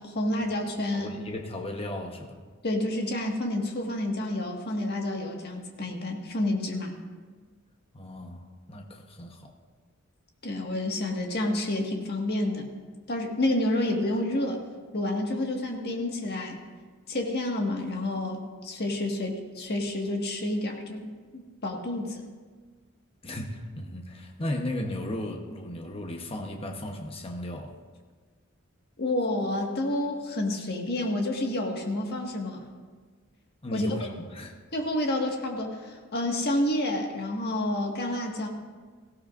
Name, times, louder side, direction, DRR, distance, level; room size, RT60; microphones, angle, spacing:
voice 1, 0.0-1.1 2.6-6.9 10.4-12.7 13.1-14.6 14.9-16.6 17.1-21.1 21.3-22.2 29.0-32.6 33.7-33.9 34.7-38.5, left 1 dB, 50° left, 1 dB, 1.7 m, -29 dB
voice 2, 0.9-2.4 7.9-9.5 23.2-27.7 33.6-34.6, left 1 dB, 25° left, 2 dB, 1.0 m, -35 dB
17.5 x 15.5 x 2.5 m, 1.5 s
head